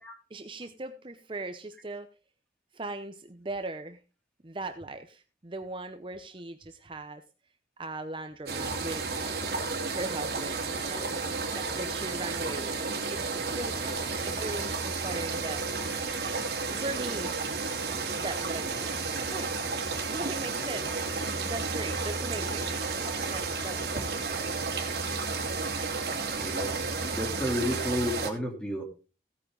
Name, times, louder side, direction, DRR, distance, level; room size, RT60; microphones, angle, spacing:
voice 1, 0.3-2.1 2.7-4.0 4.4-7.2 7.8-9.1 9.9-11.2 11.5-13.9 14.2-15.6 16.7-17.4 18.2-19.6 20.1-21.0 21.4-22.7 23.2-24.5 27.0-27.2, right 2 dB, 30° right, 8 dB, 0.7 m, -39 dB
sound 1, 8.5-28.3, right 4 dB, 60° right, 3.2 m, -32 dB
voice 2, 26.3-28.8, equal, 5° left, 1 dB, 3.2 m, -32 dB
16.5 x 9.5 x 3.8 m, 0.34 s
head